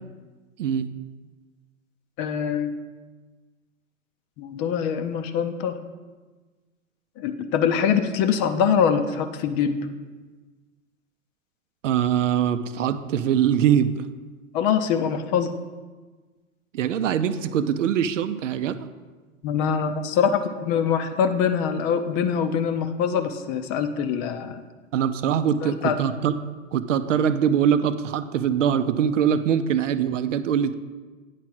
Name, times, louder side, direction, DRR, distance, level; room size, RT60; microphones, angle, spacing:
voice 1, 0.6-0.9 11.8-14.0 16.7-18.8 24.9-26.4 26.7-30.7, right 8 dB, 65° right, 12 dB, 0.7 m, -23 dB
voice 2, 2.2-2.8 4.4-5.7 7.2-9.8 14.5-15.5 19.4-24.6 25.6-26.0, left 7 dB, 30° left, 9 dB, 0.6 m, -24 dB
8.9 x 4.6 x 6.1 m, 1.3 s
hypercardioid pair, 110°, 40 cm